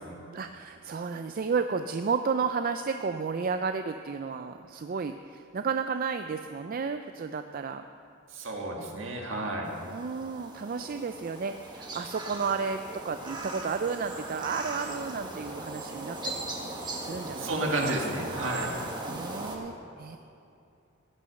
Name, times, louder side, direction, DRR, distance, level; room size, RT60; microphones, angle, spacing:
voice 1, 0.3-7.9 9.8-16.4 17.0-17.5 17.8-18.0 18.3-18.5 19.1-20.2, right 5 dB, 45° right, 8 dB, 0.4 m, -32 dB
voice 2, 8.3-9.7 17.3-18.8, right 2 dB, 65° right, 0 dB, 2.0 m, -32 dB
sound 1, 9.6-19.6, right 2 dB, 20° right, 1.5 m, -39 dB
15.5 x 8.5 x 6.4 m, 2.7 s
head